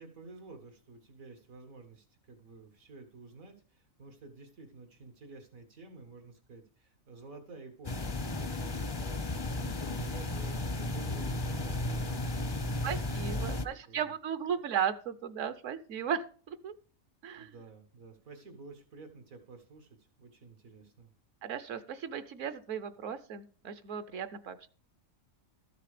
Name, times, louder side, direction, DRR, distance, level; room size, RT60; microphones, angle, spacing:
voice 1, 0.0-9.2 9.6-12.8 13.3-14.1 14.5-14.6 17.4-21.1, right 3 dB, 85° right, 5 dB, 2.2 m, -51 dB
sound 1, 7.8-13.7, left 2 dB, 30° left, 0.4 m, -34 dB
voice 2, 12.8-16.7 17.2-17.5 21.4-24.7, right 8 dB, 70° right, 12 dB, 1.1 m, -36 dB
13.0 x 6.7 x 5.0 m, 0.40 s
omnidirectional pair, 1.4 m